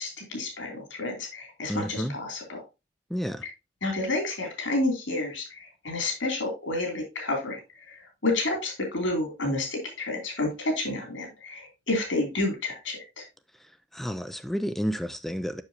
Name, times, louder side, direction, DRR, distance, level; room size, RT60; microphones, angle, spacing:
voice 1, 0.0-2.6 3.8-13.2, left 2 dB, 90° left, 2.9 m, -30 dB
voice 2, 1.7-2.1 3.1-3.4 13.9-15.6, equal, ahead, 0.3 m, -30 dB
7.2 x 6.4 x 2.8 m
head